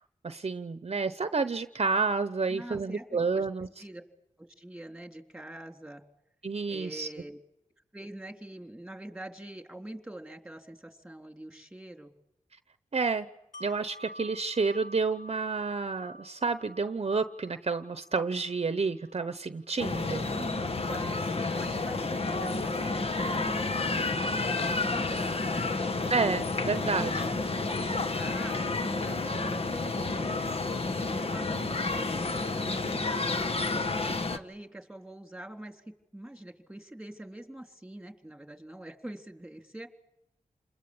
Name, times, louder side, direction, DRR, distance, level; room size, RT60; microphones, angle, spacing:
voice 1, 0.2-3.7 6.4-7.1 12.9-13.3 13.6-20.3 26.1-27.3, right 4 dB, 50° right, 11 dB, 0.9 m, -30 dB
voice 2, 2.5-3.5 3.8-4.0 4.4-6.0 6.7-7.4 7.9-12.1 20.2-25.7 26.7-28.6 28.9-30.6 30.9-39.9, right 1 dB, 5° right, 4 dB, 3.5 m, -44 dB
Wind chime, 13.5-19.3 19.7-19.9, equal, 70° left, 2.4 m, -50 dB
sound 1, 19.8-34.4, left 3 dB, 50° left, 1.4 m, -30 dB
28.5 x 21.0 x 8.7 m, 0.86 s
cardioid pair, 60°, 13 cm